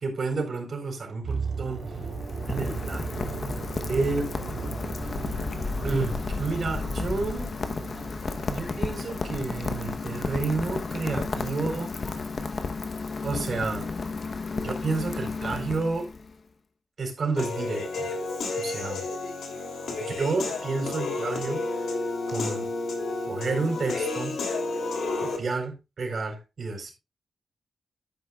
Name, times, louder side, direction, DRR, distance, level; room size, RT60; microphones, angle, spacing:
voice 1, 0.0-1.8 2.5-3.2 3.9-4.2 5.8-7.5 8.5-11.9 13.2-13.9 14.5-16.1 17.0-18.1 18.6-19.0 20.0-22.0 22.3-22.6 23.3-24.3 25.2-26.9, right 3 dB, 45° right, 4.2 m, -30 dB
Deepened Hit, 1.2-11.2 11.5-11.7, right 4 dB, 70° right, 2.8 m, -37 dB
Rain, 1.5-16.3, left 4 dB, 40° left, 1.0 m, -33 dB
Human voice / Piano, 17.4-25.4, left 3 dB, 85° left, 3.0 m, -31 dB
12.5 x 9.1 x 2.4 m
wide cardioid pair, 170°, 0 cm